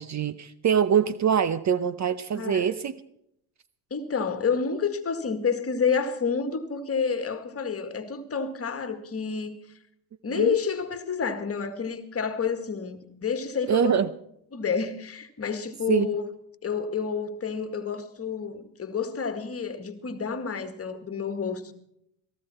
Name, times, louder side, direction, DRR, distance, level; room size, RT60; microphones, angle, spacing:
voice 1, 0.0-3.0 10.3-10.6 13.7-14.1 15.9-16.1, right 8 dB, 35° right, 0.8 m, -24 dB
voice 2, 2.3-2.7 3.9-9.6 10.2-14.0 14.5-16.3 16.6-21.7, left 6 dB, 30° left, 2.0 m, -29 dB
18.0 x 15.0 x 4.4 m
supercardioid pair, 95°, 48 cm